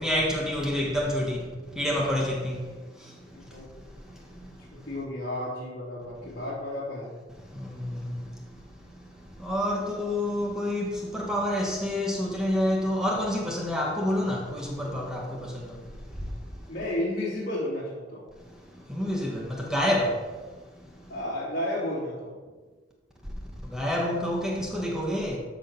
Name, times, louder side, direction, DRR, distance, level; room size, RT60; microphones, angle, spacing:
voice 1, 0.0-1.4 1.8-2.6 7.6-8.1 9.4-15.5 18.9-20.1 23.7-25.4, left 1 dB, 5° right, 1.5 m, -28 dB
voice 2, 3.3-3.7 4.7-7.1 9.8-10.1 16.7-18.2 21.1-22.3, left 1 dB, 50° left, 3.1 m, -32 dB
13.5 x 4.8 x 5.9 m
head